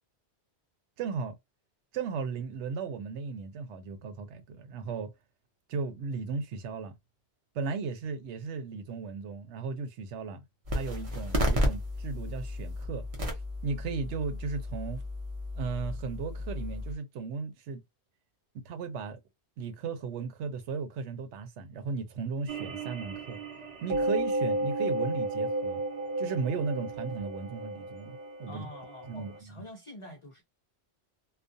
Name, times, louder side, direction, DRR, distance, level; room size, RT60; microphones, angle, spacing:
voice 1, 1.0-1.4 1.9-5.1 5.7-7.0 7.5-10.4 10.7-13.0 13.6-15.0 15.6-17.8 18.5-19.2 19.6-23.4 23.8-25.8 26.2-28.7 29.0-29.6, right 5 dB, 85° right, 0.9 m, -36 dB
sound 1, 10.6-16.9, left 1 dB, 35° right, 0.7 m, -33 dB
sound 2, 22.5-29.4, right 1 dB, 65° right, 1.1 m, -33 dB
voice 2, 28.5-30.4, left 1 dB, 55° left, 0.3 m, -46 dB
2.4 x 2.1 x 2.5 m
omnidirectional pair, 1.1 m